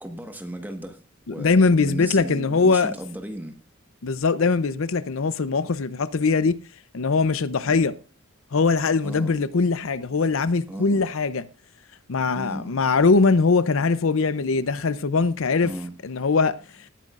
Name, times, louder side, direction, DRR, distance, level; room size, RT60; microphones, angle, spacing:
voice 1, 0.0-1.0 1.3-3.5 7.6-7.8 9.0-9.4 10.7-11.1 12.3-12.7 15.6-15.9, right 1 dB, 10° right, 1.4 m, -35 dB
voice 2, 1.4-2.9 4.0-6.6 6.9-8.0 8.5-11.5 12.1-15.7 16.0-16.6, left 4 dB, 70° left, 0.6 m, -21 dB
18.5 x 9.3 x 2.5 m
head